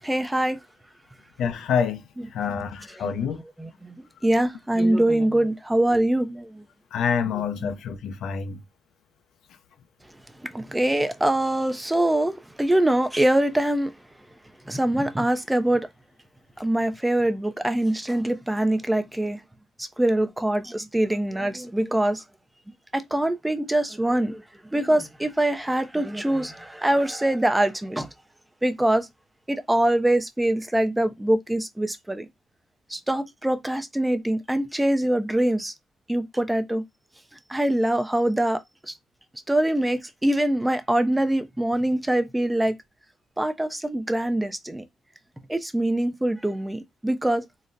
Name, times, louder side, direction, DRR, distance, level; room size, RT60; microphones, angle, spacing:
voice 1, 0.0-0.6 3.0-3.1 3.6-4.0 4.2-6.6 10.5-13.9 14.7-15.9 16.6-19.4 19.8-22.2 22.9-24.4 24.7-28.1 28.6-29.1 29.5-32.3 32.9-35.7 36.1-36.8 37.5-38.9 39.5-42.7 43.4-44.8 45.5-47.4, right 1 dB, 10° right, 0.4 m, -23 dB
voice 2, 1.4-2.0 2.3-3.4 6.9-8.6, left 7 dB, 75° left, 0.4 m, -27 dB
3.8 x 2.1 x 2.5 m
cardioid pair, 90°, 0 cm